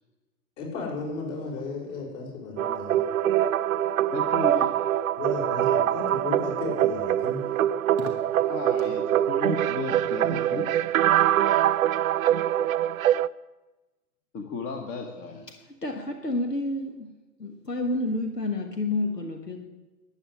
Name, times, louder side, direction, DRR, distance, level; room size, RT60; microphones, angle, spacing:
voice 1, 0.6-3.0 5.2-7.4, left 3 dB, 45° left, -1 dB, 6.1 m, -34 dB
sound 1, 2.6-13.3, right 11 dB, 60° right, 0.5 m, -24 dB
voice 2, 4.1-4.7 8.5-10.7 14.3-15.5, left 4 dB, 25° left, 4 dB, 1.3 m, -34 dB
voice 3, 15.8-17.1 17.4-19.7, left 2 dB, 85° left, 5 dB, 1.6 m, -29 dB
12.5 x 8.2 x 9.9 m, 1.1 s
figure-of-eight pair, 105°, 47 cm